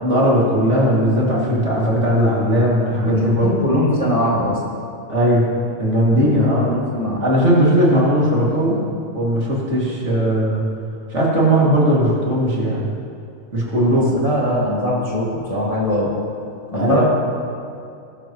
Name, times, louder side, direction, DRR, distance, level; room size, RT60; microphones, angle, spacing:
voice 1, 0.0-3.5 5.1-5.5 5.8-6.8 7.2-8.8 9.1-10.6 11.1-12.8 13.5-14.1 16.7-17.0, equal, 55° right, -5 dB, 3.0 m, -17 dB
voice 2, 3.4-4.6 6.1-7.2 13.9-16.1 16.7-17.0, left 1 dB, 25° left, -5 dB, 2.2 m, -21 dB
21.0 x 12.0 x 3.1 m, 2.4 s
omnidirectional pair, 1.5 m